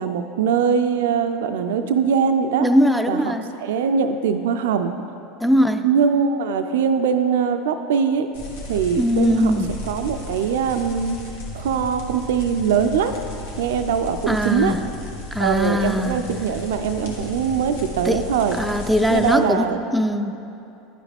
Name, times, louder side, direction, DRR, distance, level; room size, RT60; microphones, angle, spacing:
voice 1, 0.0-2.7 3.1-3.3 3.6-4.9 5.8-8.3 8.7-9.5 9.9-11.2 11.5-13.2 13.6-14.7 15.4-18.6 19.1-19.8, right 7 dB, 80° right, 8 dB, 0.3 m, -22 dB
voice 2, 2.6-3.5 5.4-5.8 9.0-9.7 14.3-14.8 15.3-16.2 18.0-18.2 18.6-19.7 19.9-20.3, equal, ahead, 7 dB, 0.4 m, -20 dB
sound 1, 8.3-19.3, left 2 dB, 85° left, 1.3 m, -35 dB
10.5 x 4.9 x 3.4 m, 2.9 s
hypercardioid pair, 100°, 0 cm